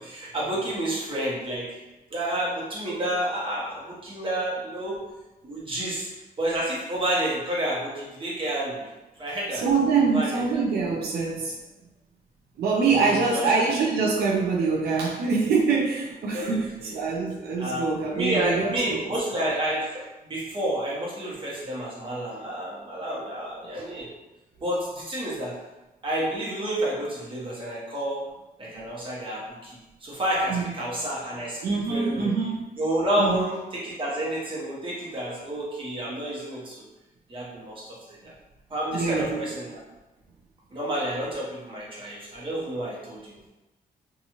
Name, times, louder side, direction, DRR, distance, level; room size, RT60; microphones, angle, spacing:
voice 1, 0.0-1.8 2.1-5.0 5.4-6.1 6.4-8.9 9.2-9.6 10.1-10.3 12.9-13.4 16.3-16.9 17.6-17.8 18.1-24.1 24.6-25.5 26.0-28.2 28.6-31.6 31.9-32.3 32.8-36.8 37.3-38.0 38.2-38.3 38.7-39.8 40.7-43.4, right 1 dB, 35° right, -5 dB, 1.0 m, -29 dB
voice 2, 9.5-11.6 12.6-19.0 28.7-28.8 30.5-30.7 31.6-32.8 33.2-33.4 38.9-39.5, right 4 dB, 90° right, -2 dB, 0.5 m, -25 dB
2.6 x 2.3 x 2.8 m, 1.1 s
cardioid pair, 125°, 16 cm